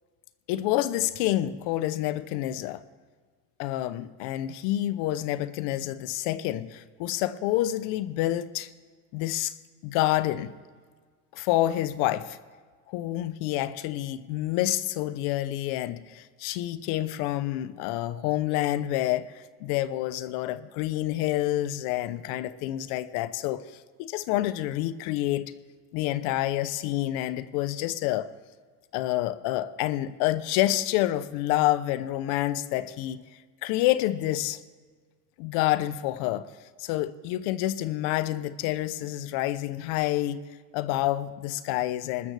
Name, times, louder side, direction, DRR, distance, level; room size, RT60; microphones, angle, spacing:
voice 1, 0.5-2.8 3.6-8.7 9.1-9.6 9.8-10.5 11.3-12.4 12.9-25.5 25.9-28.3 28.9-33.2 33.6-34.6 35.4-36.5 36.8-40.4 40.7-42.3, left 14 dB, 70° left, 0.7 m, -28 dB
21.0 x 13.0 x 3.3 m
cardioid pair, 170°, 39 cm